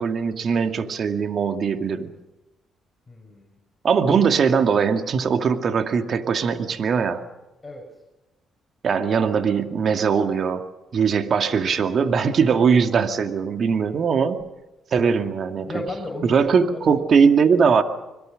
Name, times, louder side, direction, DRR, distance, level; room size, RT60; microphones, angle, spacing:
voice 1, 0.0-2.1 3.8-7.2 8.8-10.6 10.9-14.4 14.9-15.7 16.2-17.8, right 6 dB, 55° right, 7 dB, 2.3 m, -20 dB
voice 2, 3.1-3.6 7.6-7.9 15.7-17.0, left 2 dB, 20° left, 1 dB, 6.5 m, -34 dB
26.0 x 22.5 x 6.5 m, 1.0 s
supercardioid pair, 60°, 0 cm